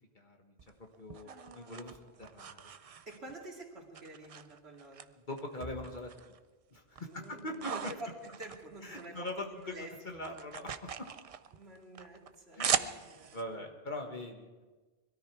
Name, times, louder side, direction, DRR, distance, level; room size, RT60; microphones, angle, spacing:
voice 1, 0.1-2.6 5.3-6.1 6.7-7.9 8.8-9.7 10.0-10.7 11.0-11.1 12.6-13.0 13.3-14.6, left 1 dB, 50° left, 3 dB, 1.6 m, -42 dB
sound 1, 0.6-3.5 3.9-5.0 5.4-6.4 6.7-9.3 9.6-13.4, right 7 dB, 45° right, 0.5 m, -39 dB
voice 2, 1.2-2.2 3.1-5.1 7.0-10.0 11.5-13.7, right 1 dB, 85° right, -1 dB, 2.7 m, -49 dB
21.5 x 13.5 x 4.7 m, 1.3 s
omnidirectional pair, 1.1 m